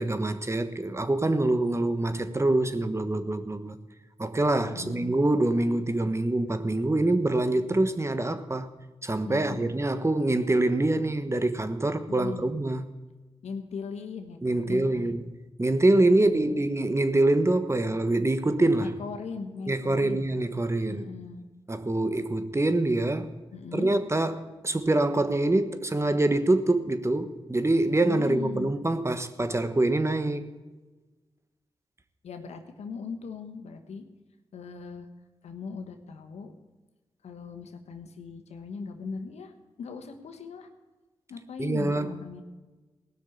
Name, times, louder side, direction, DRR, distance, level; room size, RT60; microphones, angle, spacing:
voice 1, 0.0-3.8 4.2-8.7 9.0-12.8 14.4-15.2 15.6-18.9 19.7-21.0 21.7-23.4 23.7-30.4 41.6-42.1, right 2 dB, 25° right, 10 dB, 1.3 m, -25 dB
voice 2, 4.6-5.1 9.2-9.7 12.1-12.5 13.4-15.1 16.1-16.6 18.8-20.3 20.9-21.4 23.5-23.9 28.0-28.7 32.2-34.0 34.5-35.1 35.4-36.5 37.2-40.7 41.3-42.4, left 5 dB, 90° left, 6 dB, 1.3 m, -39 dB
17.0 x 6.3 x 8.5 m, 1.2 s
cardioid pair, 50°, 11 cm